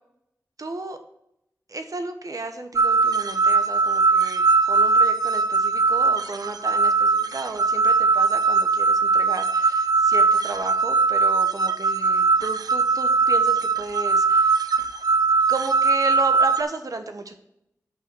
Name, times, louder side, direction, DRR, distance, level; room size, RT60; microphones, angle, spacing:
voice 1, 0.6-1.0 1.7-14.7 15.5-17.4, right 3 dB, 65° right, 7 dB, 1.0 m, -33 dB
sound 1, 2.8-16.6, right 4 dB, 90° right, 0.5 m, -20 dB
6.6 x 5.6 x 6.1 m, 0.80 s
cardioid pair, 40°, 6 cm